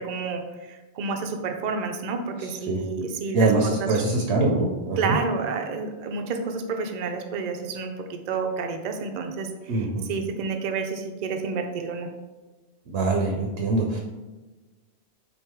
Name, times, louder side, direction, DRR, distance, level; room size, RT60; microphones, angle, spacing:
voice 1, 0.0-4.0 5.0-12.1, right 4 dB, 55° right, 4 dB, 0.5 m, -30 dB
voice 2, 3.3-5.1 9.7-10.0 12.9-14.0, right 2 dB, 80° right, 1 dB, 0.9 m, -23 dB
4.7 x 2.6 x 4.4 m, 1.2 s
omnidirectional pair, 1.1 m